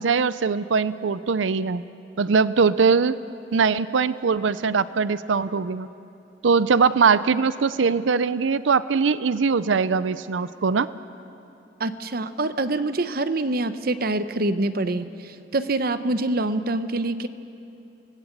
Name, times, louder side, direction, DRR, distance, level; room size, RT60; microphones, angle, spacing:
voice 1, 0.0-1.8 2.2-3.2 3.5-5.9 6.4-10.9, right 5 dB, 85° right, 15 dB, 0.5 m, -21 dB
voice 2, 11.8-17.3, right 2 dB, 55° right, 11 dB, 0.9 m, -25 dB
27.5 x 19.0 x 8.1 m, 2.7 s
head